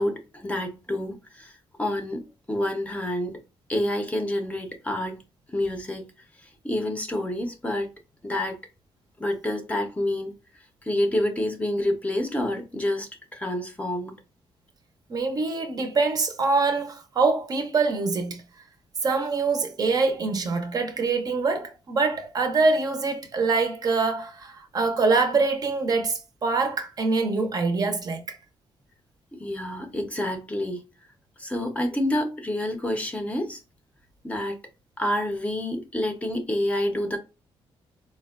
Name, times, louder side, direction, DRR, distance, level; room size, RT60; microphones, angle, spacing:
voice 1, 0.0-1.5 1.8-3.4 3.7-5.2 5.5-6.1 6.6-7.9 8.2-8.6 9.2-10.3 10.8-14.2 29.3-30.8 31.4-33.6 34.2-34.6 35.0-37.2, left 1 dB, 15° left, 0.5 m, -28 dB
voice 2, 15.1-18.4 19.0-28.4, right 4 dB, 40° right, 0.5 m, -24 dB
4.2 x 2.1 x 2.3 m
wide cardioid pair, 155°, 10 cm